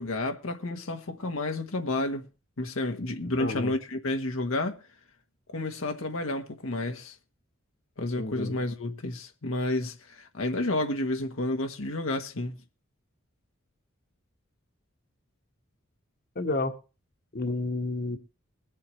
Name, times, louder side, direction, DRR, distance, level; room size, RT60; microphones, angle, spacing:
voice 1, 0.0-2.3 2.6-4.8 5.5-7.1 8.0-12.6, left 2 dB, 75° left, 1.2 m, -30 dB
voice 2, 3.4-3.7 8.2-8.5 16.3-16.7 17.3-18.2, left 2 dB, 50° left, 1.4 m, -30 dB
22.0 x 8.2 x 3.1 m
head